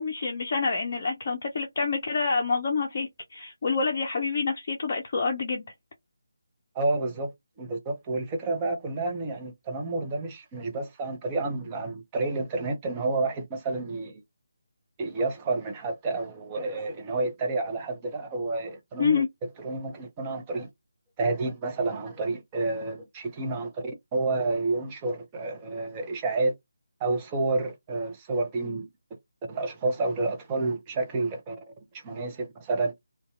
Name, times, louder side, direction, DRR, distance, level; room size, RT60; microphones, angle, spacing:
voice 1, 0.0-5.7 19.0-19.3, left 4 dB, 40° left, 0.5 m, -27 dB
voice 2, 6.7-7.3 7.6-14.2 15.0-19.2 19.6-20.7 21.2-26.6 27.0-28.9 29.5-31.6 31.9-32.9, right 3 dB, 20° right, 0.6 m, -30 dB
2.6 x 2.2 x 2.4 m
figure-of-eight pair, 155°, 0 cm